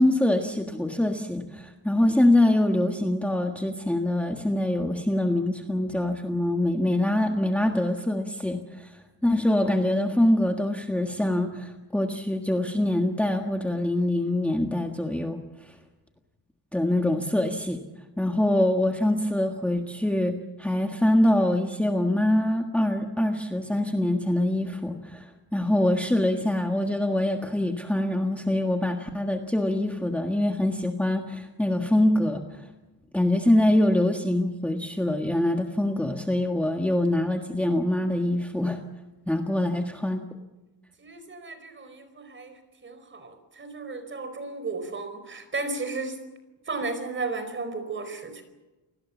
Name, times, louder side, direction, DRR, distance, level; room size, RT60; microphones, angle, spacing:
voice 1, 0.0-15.8 16.7-17.8 18.2-32.7 33.1-38.8 39.3-40.2, left 1 dB, 5° left, 3 dB, 1.5 m, -24 dB
voice 2, 41.0-46.2 46.7-48.4, right 3 dB, 30° right, 9 dB, 4.8 m, -34 dB
29.0 x 19.5 x 7.3 m, 1.1 s
wide cardioid pair, 155°, 38 cm